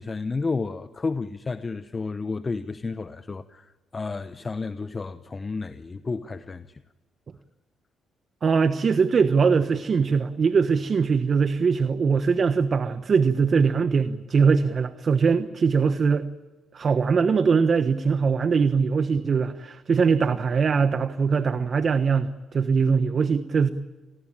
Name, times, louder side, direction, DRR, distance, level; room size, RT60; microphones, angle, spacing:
voice 1, 0.0-6.8, left 4 dB, 30° left, 1.0 m, -31 dB
voice 2, 8.4-16.3 16.7-23.7, right 5 dB, 45° right, 1.2 m, -22 dB
28.5 x 19.5 x 8.9 m
cardioid pair, 90°, 0 cm